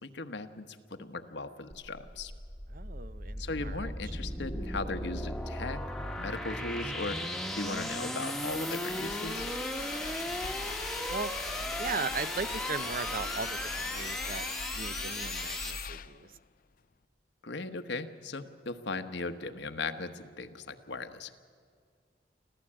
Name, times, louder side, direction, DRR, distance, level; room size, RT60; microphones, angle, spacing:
voice 1, 0.0-2.3 3.4-5.8 6.2-9.5 17.4-21.4, left 3 dB, 75° left, 8 dB, 1.2 m, -38 dB
sound 1, 1.7-15.9, left 1 dB, ahead, 1.1 m, -36 dB
voice 2, 2.7-4.0 10.2-10.6 11.1-11.3 11.8-14.5 14.8-16.3, right 4 dB, 50° right, 15 dB, 0.6 m, -38 dB
Engine, 8.7-16.4, left 6 dB, 50° left, 0.5 m, -41 dB
25.0 x 15.5 x 8.8 m, 2.1 s
head